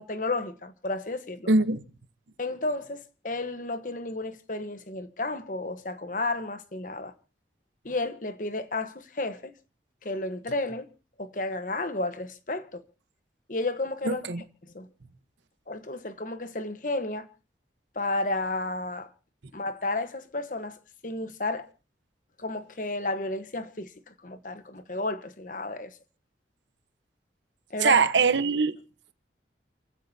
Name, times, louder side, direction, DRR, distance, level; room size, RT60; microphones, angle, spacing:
voice 1, 0.0-1.5 2.4-7.1 7.8-9.5 10.0-10.9 11.2-12.8 13.5-14.2 14.6-14.9 15.7-17.3 17.9-19.1 19.5-21.7 22.4-26.0 27.7-28.0, left 2 dB, 45° left, 1.1 m, -32 dB
voice 2, 1.5-1.8 14.1-14.4 27.8-28.8, right 4 dB, 90° right, 1.0 m, -22 dB
29.0 x 15.5 x 2.7 m
head